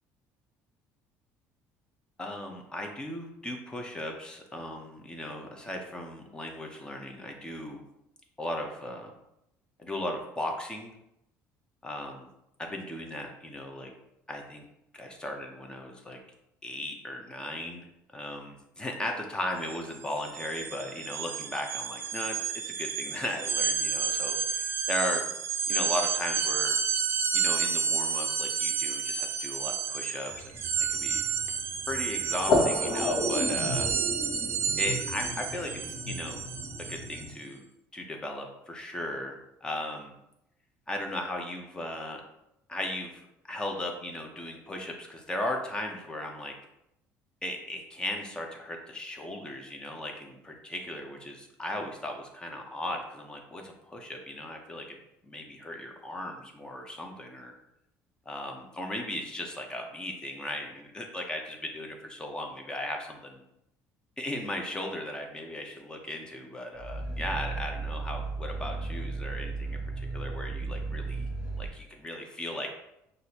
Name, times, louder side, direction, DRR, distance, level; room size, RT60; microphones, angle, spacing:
voice 1, 2.2-7.8 8.4-9.1 9.8-10.9 11.8-12.3 12.6-13.9 14.3-14.6 14.9-16.2 16.6-22.4 22.6-25.2 25.7-26.8 27.3-31.2 31.9-33.9 34.7-36.4 36.8-37.6 37.9-40.1 40.9-42.2 42.7-43.2 43.5-46.5 47.4-55.0 55.2-57.5 58.3-63.4 64.2-71.3 71.6-72.7, left 1 dB, 15° left, 2 dB, 0.8 m, -37 dB
sound 1, 19.6-19.8 20.1-37.3, right 6 dB, 45° right, 0.5 m, -31 dB
sound 2, 30.3-37.3, left 2 dB, 55° left, 1.1 m, -32 dB
Growling, 66.8-71.7, right 3 dB, 15° right, 1.5 m, -35 dB
6.1 x 2.6 x 2.8 m, 0.83 s
cardioid pair, 120°, 6 cm